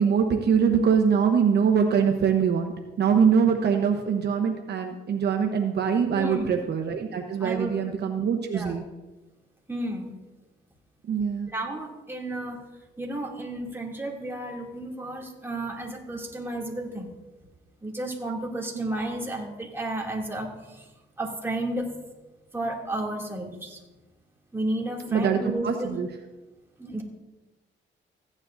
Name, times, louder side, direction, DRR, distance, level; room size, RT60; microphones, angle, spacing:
voice 1, 0.0-2.7 3.0-8.8 11.1-11.5 18.7-18.8 25.1-26.1, right 7 dB, 55° right, 4 dB, 0.9 m, -23 dB
voice 2, 6.1-6.5 7.4-7.7 8.5-8.8 9.7-10.1 11.5-12.6 13.0-17.1 17.8-20.8 21.2-22.0 22.5-23.8 24.5-25.9 26.8-27.0, right 1 dB, 10° right, -2 dB, 2.5 m, -32 dB
15.5 x 9.6 x 2.6 m, 1.1 s
cardioid pair, 90°, 20 cm